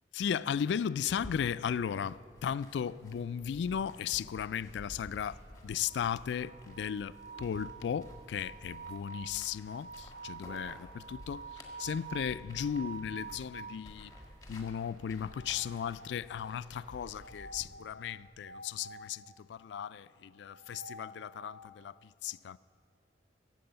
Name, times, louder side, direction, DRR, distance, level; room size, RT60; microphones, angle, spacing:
voice 1, 0.1-14.1 14.5-22.6, left 8 dB, 80° left, 0.3 m, -36 dB
sound 1, 1.1-17.7, left 1 dB, 20° left, 1.8 m, -53 dB
sound 2, 5.8-13.9 15.1-16.4 17.2-19.1 20.3-21.7, right 4 dB, 60° right, 1.3 m, -48 dB
15.5 x 7.7 x 7.9 m
head